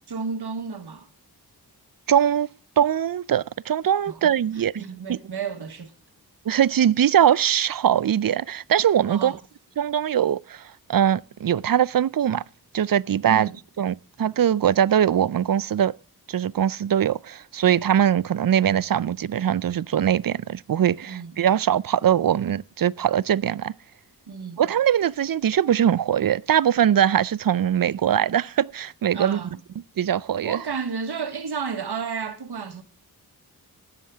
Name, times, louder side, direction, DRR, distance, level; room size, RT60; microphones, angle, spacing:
voice 1, 0.1-1.1 4.1-5.9 9.1-9.4 13.2-13.6 21.1-21.3 24.3-24.6 29.1-29.6 30.4-32.8, right 6 dB, 85° right, 1.4 m, -32 dB
voice 2, 2.1-2.5 2.8-4.7 5.1-5.2 6.5-9.3 9.8-12.4 12.7-13.5 13.8-15.9 16.3-23.7 24.6-29.4 30.0-30.6, right 9 dB, 60° right, 0.5 m, -21 dB
19.0 x 7.3 x 3.5 m
wide cardioid pair, 70°, 38 cm